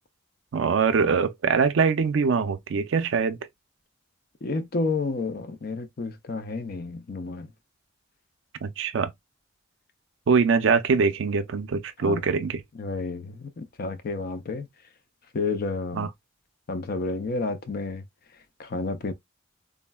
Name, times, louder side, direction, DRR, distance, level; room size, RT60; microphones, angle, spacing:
voice 1, 0.5-3.4 8.6-9.1 10.3-12.6 15.9-16.1, right 5 dB, 65° right, 0.4 m, -23 dB
voice 2, 4.4-7.5 12.0-12.2 12.7-14.7 15.3-16.1 16.7-18.0 18.6-19.1, left 3 dB, 50° left, 0.5 m, -30 dB
3.6 x 2.1 x 2.2 m
head